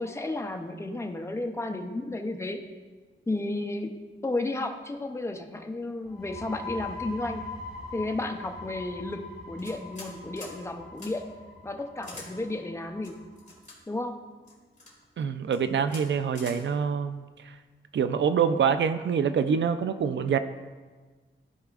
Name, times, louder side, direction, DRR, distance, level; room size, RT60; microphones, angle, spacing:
voice 1, 0.0-2.6 3.3-7.4 7.9-11.3 11.6-13.2 13.9-14.2, left 2 dB, 15° left, 4 dB, 0.6 m, -33 dB
sound 1, 6.0-13.5, left 2 dB, ahead, 2.4 m, -42 dB
sound 2, 9.6-10.1 10.4-10.5 11.0-11.1 12.0-12.3 13.0-13.7 14.5-14.9 15.4-15.6 15.9-16.0 16.3-16.6, left 2 dB, 35° left, 2.1 m, -44 dB
voice 2, 15.2-17.5 17.9-20.4, right 7 dB, 65° right, 10 dB, 0.4 m, -26 dB
14.0 x 4.8 x 2.4 m, 1.4 s
wide cardioid pair, 130°, 21 cm